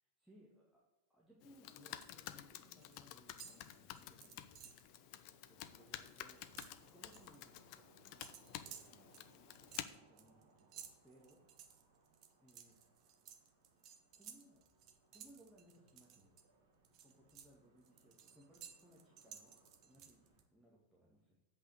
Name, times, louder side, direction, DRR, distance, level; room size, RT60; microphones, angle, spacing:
voice 1, 0.2-0.8 1.1-4.7 5.5-8.3 8.6-9.2 9.8-11.4 12.4-12.8 14.2-14.7 15.1-16.3 17.0-19.6 19.8-21.4, right 1 dB, ahead, -5 dB, 1.9 m, -66 dB
Computer keyboard, 1.4-9.8, left 13 dB, 45° left, 0.5 m, -51 dB
sound 1, 1.5-2.2 2.5-3.0 3.3-4.9 5.3-5.5 5.7-7.4 8.2-16.4 16.8-20.4, right 8 dB, 40° right, 1.0 m, -57 dB
sound 2, 4.8-20.4, right 3 dB, 55° right, 2.1 m, -71 dB
8.3 x 5.5 x 7.6 m, 1.1 s
figure-of-eight pair, 90°, 0 cm